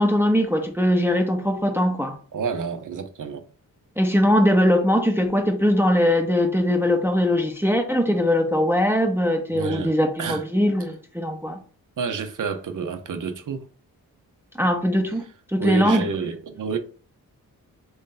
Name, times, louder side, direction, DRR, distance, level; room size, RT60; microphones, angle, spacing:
voice 1, 0.0-2.2 4.0-11.6 14.6-15.3 15.5-16.1, equal, 5° right, 0.6 m, -21 dB
voice 2, 2.3-3.4 9.5-9.9 10.2-10.4 12.0-13.6 15.6-16.8, right 5 dB, 55° right, 0.7 m, -29 dB
3.1 x 2.7 x 3.8 m
supercardioid pair, 45°, 38 cm